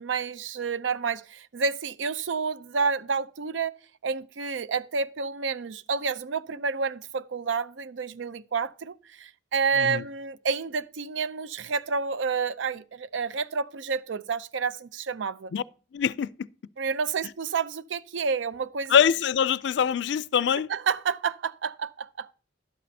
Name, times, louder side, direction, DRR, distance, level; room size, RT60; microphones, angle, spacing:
voice 1, 0.0-3.7 4.0-15.5 16.8-18.9 20.7-22.3, right 5 dB, 85° right, 0.5 m, -29 dB
voice 2, 15.9-16.5 18.9-20.7, left 8 dB, 70° left, 0.3 m, -24 dB
11.5 x 8.4 x 2.7 m
head